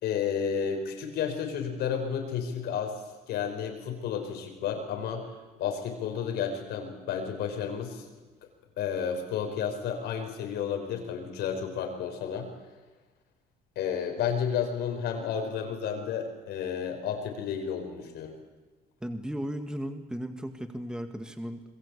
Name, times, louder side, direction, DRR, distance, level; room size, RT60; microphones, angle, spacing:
voice 1, 0.0-3.0 3.3-5.3 5.6-8.0 8.8-12.5 13.8-18.3, left 7 dB, 75° left, 4 dB, 5.6 m, -31 dB
voice 2, 19.0-21.6, equal, 5° right, 7 dB, 1.9 m, -35 dB
27.0 x 21.5 x 8.4 m, 1.3 s
cardioid pair, 110°, 17 cm